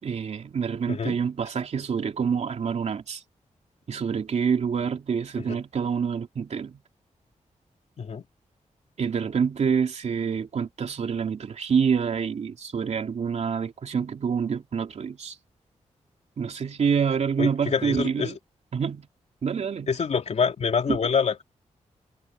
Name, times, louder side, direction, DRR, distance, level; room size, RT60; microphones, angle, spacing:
voice 1, 0.0-3.2 3.9-6.8 9.0-15.3 16.4-18.4 18.7-19.1 19.4-19.9 20.9-21.0, right 6 dB, 65° right, 2.8 m, -27 dB
voice 2, 17.4-18.3 19.9-21.4, left 6 dB, 60° left, 2.9 m, -26 dB
wide cardioid pair, 115°, 13 cm